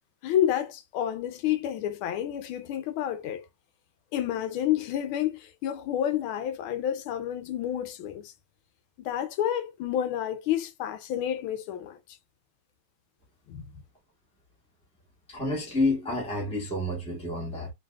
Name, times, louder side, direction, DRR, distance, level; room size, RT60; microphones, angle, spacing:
voice 1, 0.2-3.4 4.1-8.3 9.0-12.0 13.5-13.6, left 11 dB, 85° left, 1.4 m, -29 dB
voice 2, 15.3-17.7, left 2 dB, 5° left, 0.8 m, -29 dB
3.3 x 2.7 x 2.3 m
omnidirectional pair, 2.3 m